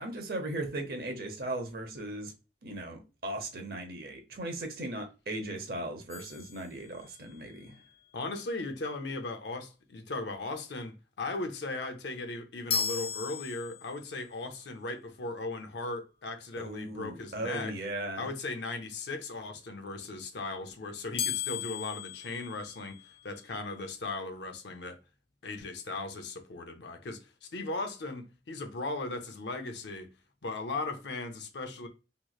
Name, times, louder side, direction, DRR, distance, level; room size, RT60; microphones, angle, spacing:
voice 1, 0.0-2.3 2.6-7.7 16.6-18.3, right 1 dB, 55° right, 0.8 m, -37 dB
sound 1, 6.1-7.4 12.7-14.2 21.2-23.3, left 8 dB, 35° left, 0.4 m, -36 dB
voice 2, 8.1-17.8 18.2-25.0 25.4-30.1 30.4-31.9, left 3 dB, 70° left, 0.6 m, -37 dB
3.1 x 3.0 x 2.3 m
head